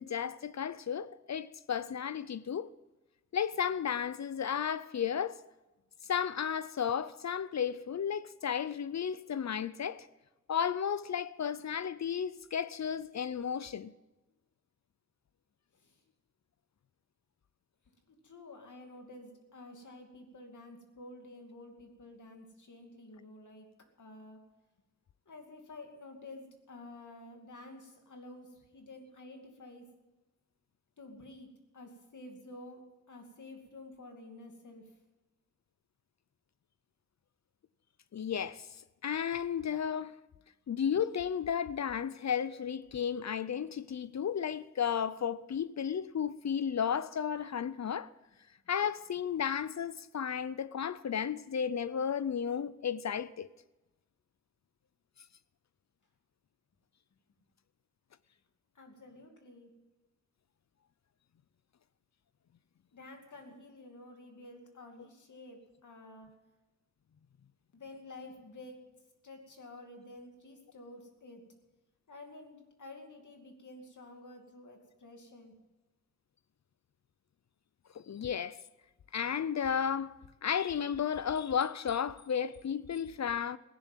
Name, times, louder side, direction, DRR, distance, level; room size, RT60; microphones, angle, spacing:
voice 1, 0.0-2.7 3.3-5.4 6.1-10.1 10.5-13.9 38.1-38.7 39.0-40.2 40.7-48.1 48.7-53.5 77.9-78.6 79.1-83.6, left 8 dB, 65° left, 0.5 m, -33 dB
voice 2, 18.2-23.7 24.0-24.4 25.3-28.5 28.7-29.8 31.0-32.8 33.1-34.8 58.8-59.7 62.9-66.3 67.7-68.8 69.2-71.4 72.1-75.5, left 2 dB, 85° left, 2.6 m, -50 dB
16.0 x 11.0 x 7.4 m
wide cardioid pair, 85°, 29 cm